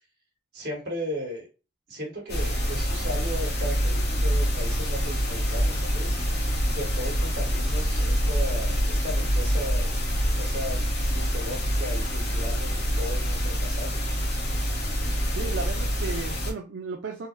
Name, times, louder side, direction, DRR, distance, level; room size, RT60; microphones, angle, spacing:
voice 1, 0.5-1.5 1.9-6.2 6.7-9.9 10.4-14.0, equal, 60° right, -2 dB, 1.7 m, -36 dB
sound 1, 2.3-16.5, equal, 60° left, 1.0 m, -26 dB
voice 2, 15.4-17.3, right 4 dB, 85° right, 2 dB, 0.4 m, -34 dB
3.9 x 2.0 x 2.4 m, 0.31 s
head